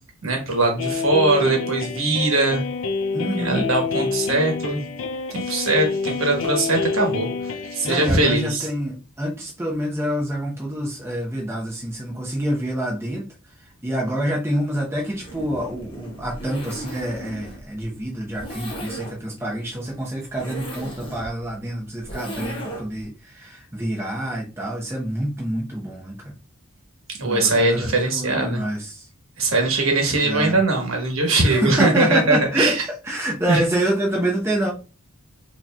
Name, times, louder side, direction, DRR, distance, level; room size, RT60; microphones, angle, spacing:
voice 1, 0.2-2.6 3.4-4.8 5.3-8.7 27.1-28.6 29.4-32.8 33.5-33.6, right 2 dB, 65° right, 1 dB, 1.2 m, -21 dB
sound 1, 0.8-8.2, left 4 dB, 65° left, 0.4 m, -27 dB
voice 2, 3.1-3.7 7.8-13.3 13.8-26.3 27.2-29.0 30.2-30.6 31.4-32.8 33.0-34.7, right 1 dB, 10° right, -3 dB, 0.7 m, -27 dB
Zipper (clothing), 15.1-23.1, right 1 dB, 25° left, 1.1 m, -37 dB
5.1 x 2.8 x 2.2 m, 0.33 s
head